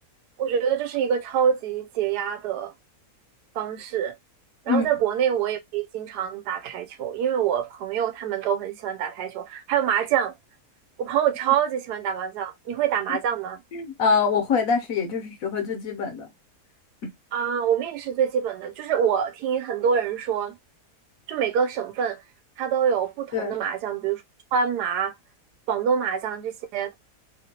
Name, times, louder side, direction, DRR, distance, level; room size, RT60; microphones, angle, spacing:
voice 1, 0.4-2.7 3.5-4.1 4.7-10.3 11.0-13.6 17.3-20.6 21.3-22.2 22.6-24.2 24.5-25.1 25.7-26.9, right 8 dB, 80° right, 1.1 m, -25 dB
voice 2, 13.7-16.3 17.0-17.1 23.3-23.6, left 5 dB, 60° left, 1.2 m, -24 dB
3.0 x 2.7 x 2.8 m
omnidirectional pair, 1.8 m